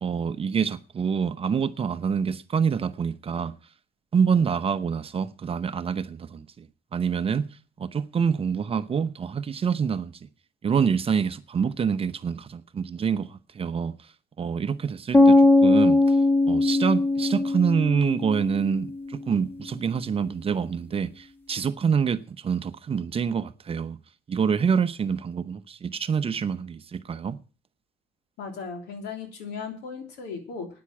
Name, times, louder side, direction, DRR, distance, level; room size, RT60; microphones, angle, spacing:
voice 1, 0.0-3.5 4.1-6.7 6.9-7.5 7.8-10.2 10.6-13.9 14.4-15.4 15.6-16.2 16.4-24.0 24.3-27.4, right 6 dB, 35° right, 0.8 m, -26 dB
sound 1, 15.1-19.1, left 2 dB, 10° left, 1.6 m, -20 dB
voice 2, 28.4-30.7, left 5 dB, 80° left, 3.3 m, -36 dB
9.6 x 8.2 x 8.8 m
cardioid pair, 110°, 17 cm